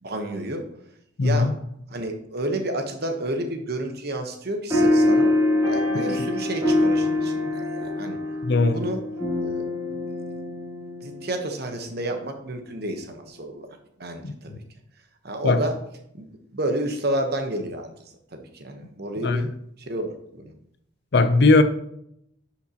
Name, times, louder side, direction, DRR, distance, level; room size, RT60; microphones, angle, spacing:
voice 1, 0.0-0.6 1.2-1.5 1.9-5.3 5.7-8.2 8.6-9.0 9.4-9.5 11.0-13.7 14.0-14.5 15.2-15.8 16.1-17.9 18.3-19.5 19.8-20.5, right 1 dB, 50° right, 5 dB, 1.1 m, -30 dB
voice 2, 1.2-1.5 8.4-8.8 14.2-14.6 15.4-15.6 19.2-19.5 21.1-21.6, left 3 dB, 60° left, 11 dB, 0.6 m, -19 dB
sound 1, 4.7-11.6, left 2 dB, 15° right, 2.8 m, -24 dB
10.0 x 6.0 x 2.9 m, 0.74 s
head